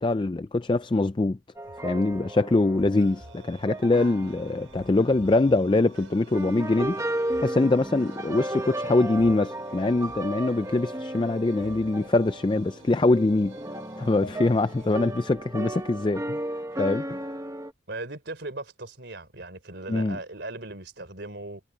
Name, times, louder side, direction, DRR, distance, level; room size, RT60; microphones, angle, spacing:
voice 1, 0.0-1.4 1.8-7.0 7.4-13.6 14.0-16.4 16.8-17.2 19.9-20.2, left 2 dB, 25° left, 0.3 m, -23 dB
sound 1, 1.6-2.3 2.7-3.7 4.1-4.4 4.7-5.6 6.2-6.3 6.8-7.9 8.5-8.6 8.9-9.4 9.6-10.3 10.7-11.0 11.3-13.1 13.5-15.0 15.7-15.9, left 2 dB, 55° left, 4.2 m, -50 dB
sound 2, 1.6-4.7 5.1-5.6 6.3-17.7, right 1 dB, 15° right, 1.1 m, -35 dB
sound 3, 2.9-15.9, right 2 dB, 85° right, 5.1 m, -51 dB
voice 2, 17.9-21.6, right 2 dB, 55° right, 3.9 m, -38 dB
head